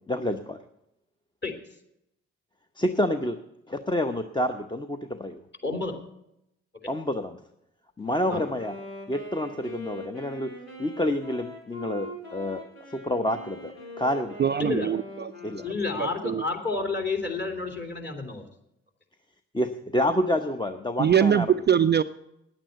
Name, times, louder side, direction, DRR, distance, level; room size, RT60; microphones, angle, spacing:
voice 1, 0.1-0.6 2.8-3.4 3.7-5.4 6.9-7.4 8.0-8.8 9.1-10.5 10.8-12.6 12.9-14.3 15.4-15.6 19.5-21.5, left 1 dB, 15° left, 6 dB, 0.9 m, -28 dB
voice 2, 5.6-6.0 8.3-8.4 14.6-14.9 15.6-18.4, left 3 dB, 35° left, 4 dB, 3.0 m, -30 dB
Wind instrument woodwind instrument, 8.0-16.3, left 1 dB, 85° left, 3.5 m, -42 dB
voice 3, 14.4-15.3 16.0-16.4 21.0-22.0, right 8 dB, 35° right, 11 dB, 0.4 m, -22 dB
9.8 x 8.9 x 8.0 m, 0.81 s
hypercardioid pair, 40°, 32 cm